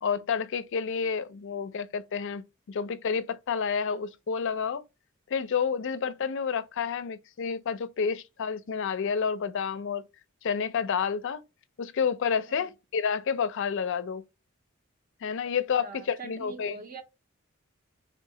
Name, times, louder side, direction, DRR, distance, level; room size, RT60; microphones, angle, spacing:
voice 1, 0.0-2.4 2.7-4.8 5.3-10.0 10.4-11.4 11.8-14.2 15.2-16.8, left 6 dB, 60° left, 0.4 m, -29 dB
voice 2, 15.8-17.0, right 3 dB, 40° right, 0.5 m, -43 dB
3.6 x 2.7 x 3.8 m
head